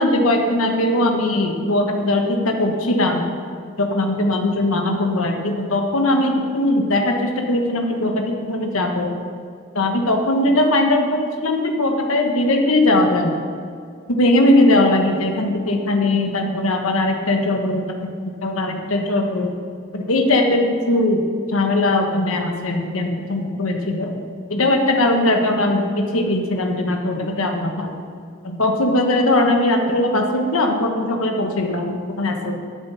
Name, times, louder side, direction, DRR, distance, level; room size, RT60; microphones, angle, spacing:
voice 1, 0.0-3.3 3.8-9.1 9.7-13.4 14.1-18.1 18.4-19.5 19.9-21.2 21.5-24.2 24.5-27.9 28.4-32.6, left 1 dB, 85° left, 3 dB, 1.4 m, -19 dB
12.5 x 7.3 x 5.7 m, 2.3 s
head